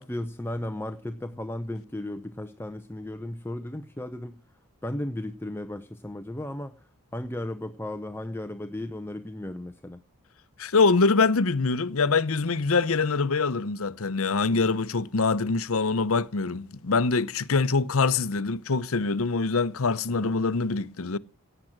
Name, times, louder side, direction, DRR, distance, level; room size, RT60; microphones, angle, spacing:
voice 1, 0.0-4.4 4.8-10.0 20.2-20.4, left 1 dB, 10° left, 0.7 m, -35 dB
voice 2, 10.6-21.2, left 4 dB, 70° left, 0.8 m, -24 dB
17.0 x 9.1 x 5.9 m
head